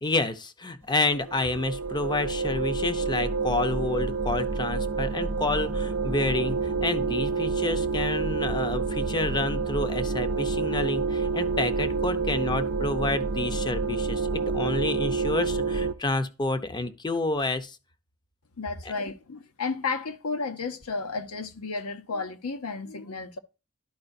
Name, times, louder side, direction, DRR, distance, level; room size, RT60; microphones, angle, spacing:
voice 1, 0.0-17.8, left 2 dB, 20° left, 0.7 m, -29 dB
sound 1, 1.1-15.9, right 4 dB, 65° right, 0.7 m, -28 dB
voice 2, 18.6-23.4, left 4 dB, 85° left, 0.8 m, -32 dB
12.0 x 4.8 x 2.6 m
head